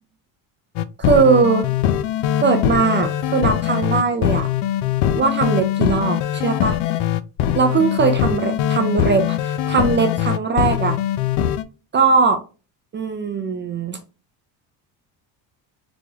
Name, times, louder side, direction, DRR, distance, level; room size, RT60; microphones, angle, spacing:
sound 1, 0.8-11.6, left 11 dB, 70° left, 0.5 m, -21 dB
voice 1, 1.0-1.7 2.4-4.5 5.1-6.8 7.5-11.0 11.9-12.4 12.9-14.0, right 5 dB, 25° right, 0.4 m, -19 dB
4.0 x 3.2 x 2.3 m
cardioid pair, 125°, 45 cm